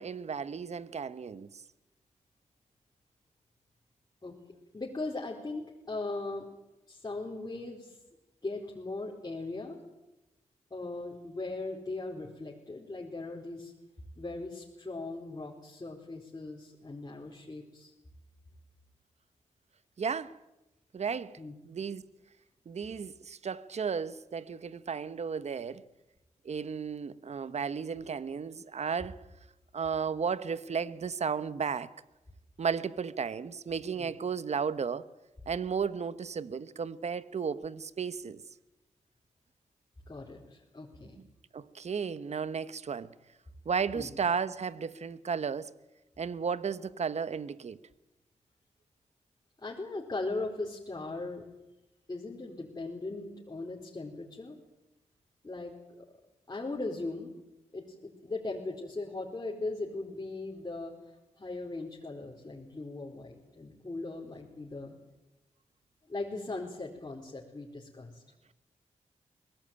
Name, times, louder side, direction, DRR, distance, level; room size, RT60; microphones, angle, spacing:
voice 1, 0.0-1.6 20.0-20.4 20.9-21.4 21.6-22.0 22.7-25.8 26.4-29.2 29.7-31.9 32.6-35.1 35.5-38.4 41.2-41.3 41.5-43.1 43.6-45.7 46.2-47.8, right 6 dB, 60° right, 1.2 m, -34 dB
voice 2, 4.7-6.5 6.9-8.0 8.4-9.8 10.7-13.7 14.2-17.9 21.4-21.5 33.9-34.1 40.1-41.2 43.9-44.1 49.6-51.4 52.1-54.6 55.4-56.1 56.5-57.3 57.7-60.9 61.4-65.0 66.1-68.2, left 2 dB, 30° left, 4.5 m, -39 dB
23.0 x 19.0 x 9.0 m
cardioid pair, 60°, 13 cm